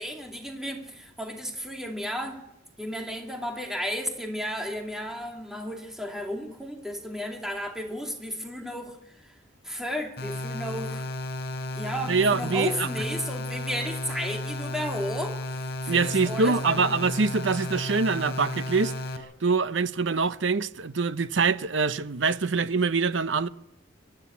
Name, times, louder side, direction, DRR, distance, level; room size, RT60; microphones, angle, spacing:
voice 1, 0.0-2.4 2.8-9.3 9.6-11.1 11.7-16.9, equal, ahead, 2.4 m, -34 dB
sound 1, 10.2-19.2, left 1 dB, 60° left, 3.9 m, -33 dB
voice 2, 12.1-12.9 15.9-18.9 19.4-23.5, right 4 dB, 70° right, 0.7 m, -24 dB
24.0 x 13.0 x 8.4 m
head